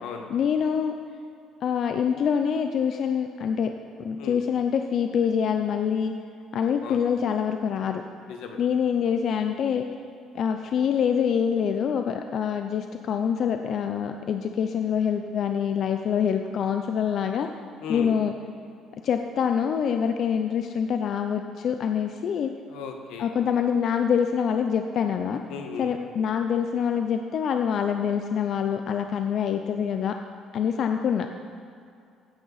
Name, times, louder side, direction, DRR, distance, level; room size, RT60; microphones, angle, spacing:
voice 1, 0.3-0.9 1.6-3.7 4.0-6.1 6.5-8.0 8.6-9.8 10.3-17.5 17.9-18.3 19.0-22.5 23.2-25.4 25.8-30.1 30.5-31.3, left 7 dB, 45° left, 6 dB, 0.5 m, -25 dB
voice 2, 8.3-8.6 17.8-18.1 22.7-23.3 25.5-25.9, left 5 dB, 80° left, 4 dB, 1.4 m, -36 dB
15.0 x 8.9 x 4.0 m, 2.4 s
cardioid pair, 155°, 0 cm